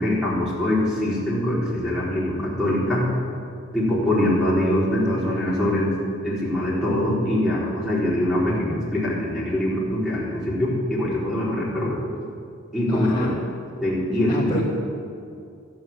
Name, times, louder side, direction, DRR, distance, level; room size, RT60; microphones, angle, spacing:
voice 1, 0.0-3.1 3.7-5.9 6.2-12.0 12.7-13.3 13.8-14.6, left 1 dB, 5° right, -8 dB, 4.2 m, -23 dB
voice 2, 12.9-13.3 14.3-14.6, left 1 dB, 20° left, -7 dB, 1.5 m, -28 dB
12.5 x 7.8 x 8.7 m, 2.4 s
head